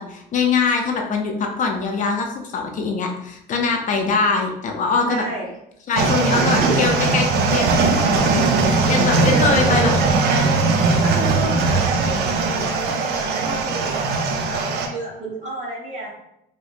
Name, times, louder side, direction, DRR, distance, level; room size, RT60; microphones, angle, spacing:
voice 1, 0.0-5.2 5.9-9.9, left 4 dB, 50° left, 2 dB, 0.5 m, -23 dB
voice 2, 5.0-5.5 6.3-6.8 9.3-10.7 11.0-16.2, right 2 dB, 45° right, -3 dB, 1.2 m, -29 dB
sound 1, 6.0-14.9, right 4 dB, 75° right, 0.5 m, -19 dB
4.2 x 2.0 x 2.5 m, 0.80 s
cardioid pair, 110°, 17 cm